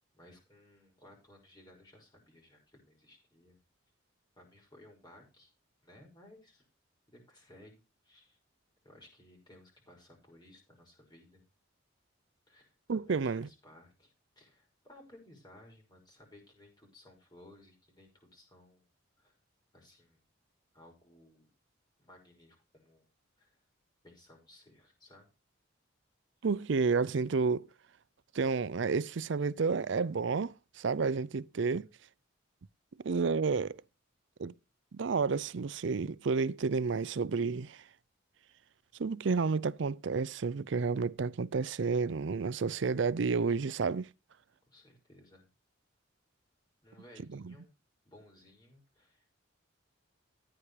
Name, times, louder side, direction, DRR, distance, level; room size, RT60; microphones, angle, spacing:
voice 1, 0.1-3.6 4.4-5.5 5.8-6.6 7.1-8.4 8.8-11.4 12.5-18.9 19.2-19.3 19.7-20.2 20.7-21.5 22.0-23.1 23.4-23.5 24.0-25.3 42.6-42.7 44.7-45.4 46.8-47.7 48.0-49.3, left 1 dB, 20° left, 6.0 m, -58 dB
voice 2, 12.9-13.5 26.4-27.7 28.3-31.9 33.0-33.8 34.4-34.5 34.9-37.8 39.0-44.1 47.3-47.5, right 4 dB, 65° right, 0.5 m, -31 dB
14.5 x 9.9 x 3.3 m
head